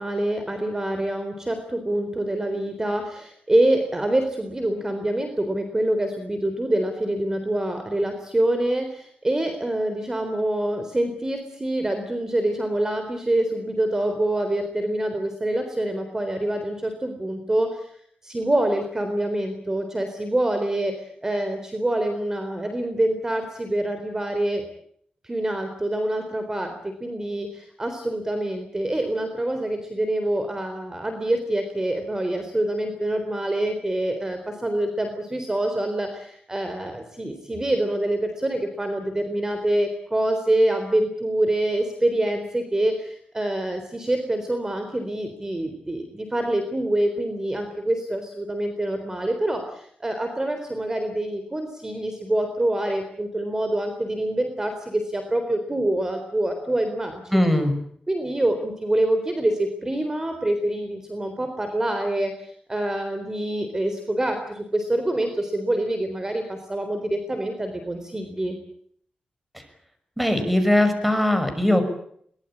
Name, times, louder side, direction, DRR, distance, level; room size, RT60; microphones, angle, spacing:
voice 1, 0.0-17.9 18.2-24.6 25.2-57.5 58.1-68.6, right 1 dB, 20° right, 7 dB, 3.9 m, -26 dB
voice 2, 57.3-57.7 69.5-69.6 70.2-71.8, left 1 dB, 5° right, 8 dB, 6.0 m, -20 dB
23.0 x 20.5 x 8.7 m, 0.65 s
wide cardioid pair, 105°, 3 cm